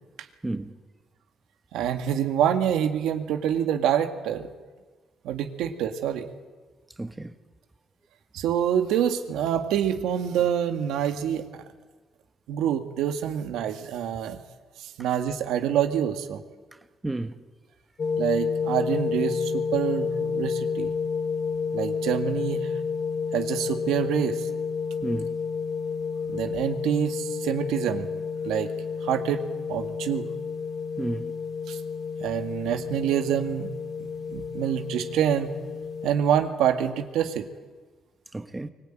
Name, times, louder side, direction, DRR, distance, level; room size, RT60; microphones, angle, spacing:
voice 1, 0.4-0.7 7.0-7.3 17.0-17.4 25.0-25.4 31.0-31.3 38.3-38.7, right 2 dB, 15° right, 1.3 m, -31 dB
voice 2, 1.7-4.5 5.2-6.3 8.3-11.5 12.5-14.4 14.8-16.4 18.2-20.9 21.7-22.7 23.3-24.5 26.3-28.1 28.4-28.7 29.0-29.4 29.7-30.3 31.7-31.8 32.2-33.7 34.3-35.5 36.0-37.5, right 9 dB, 90° right, 2.0 m, -26 dB
sound 1, 18.0-36.1, left 5 dB, 40° left, 1.9 m, -30 dB
24.0 x 19.0 x 9.1 m
cardioid pair, 90°, 0 cm